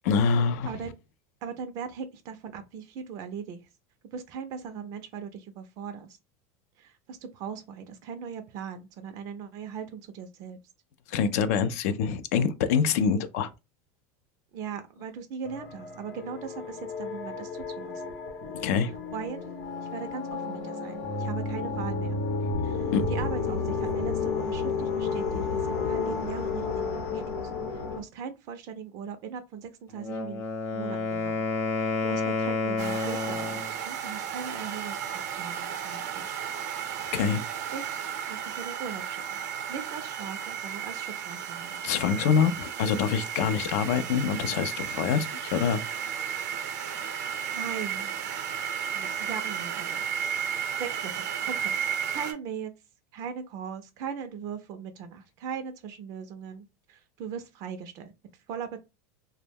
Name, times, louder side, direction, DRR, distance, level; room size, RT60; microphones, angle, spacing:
voice 1, 0.0-0.7 11.1-13.5 18.6-18.9 22.9-23.0 37.1-37.4 41.8-45.8, left 6 dB, 70° left, 0.4 m, -25 dB
voice 2, 0.6-1.0 1.4-3.6 4.1-6.2 6.8-10.6 14.5-18.1 19.1-19.4 19.9-22.2 22.6-30.4 30.7-31.5 31.8-36.4 37.7-39.4 39.7-41.9 47.4-48.2 48.9-52.7 53.1-58.1 58.5-58.8, right 7 dB, 45° right, 0.4 m, -39 dB
sound 1, 15.4-28.0, left 4 dB, 90° left, 0.8 m, -31 dB
Wind instrument woodwind instrument, 29.9-33.7, left 3 dB, 30° left, 0.7 m, -30 dB
sound 2, 32.8-52.3, right 8 dB, 85° right, 0.6 m, -34 dB
2.2 x 2.1 x 3.3 m
supercardioid pair, 145°, 8 cm